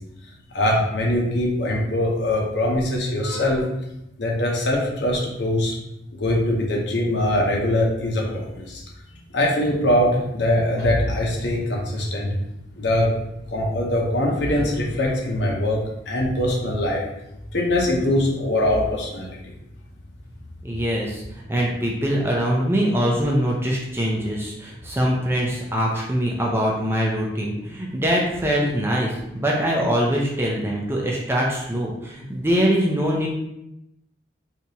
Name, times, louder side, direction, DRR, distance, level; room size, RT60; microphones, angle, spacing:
voice 1, 0.5-3.6 4.2-5.7 6.1-8.8 9.3-12.4 12.8-13.1 13.5-17.0 17.5-19.5, left 1 dB, 75° left, -2 dB, 0.8 m, -22 dB
voice 2, 20.6-33.3, equal, 15° right, -2 dB, 0.5 m, -23 dB
3.4 x 2.9 x 2.8 m, 0.84 s
head